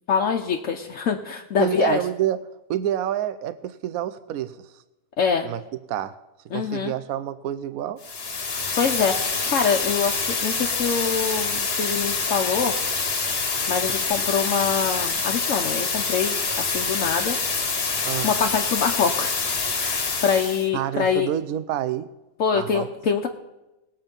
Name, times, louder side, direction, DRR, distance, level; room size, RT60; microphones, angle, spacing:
voice 1, 0.1-2.0 5.2-5.5 6.5-6.9 8.8-12.8 13.7-17.4 18.0-19.4 19.7-21.3 22.4-23.3, left 6 dB, 65° left, 2 dB, 1.2 m, -24 dB
voice 2, 1.6-2.4 2.7-4.6 5.4-5.6 5.9-6.1 6.5-8.0 18.0-18.3 20.7-22.1 22.5-22.9, right 11 dB, 85° right, 12 dB, 1.1 m, -27 dB
sound 1, 8.0-20.7, left 4 dB, 45° left, 1.4 m, -26 dB
19.5 x 8.0 x 5.3 m, 1.0 s
omnidirectional pair, 1.5 m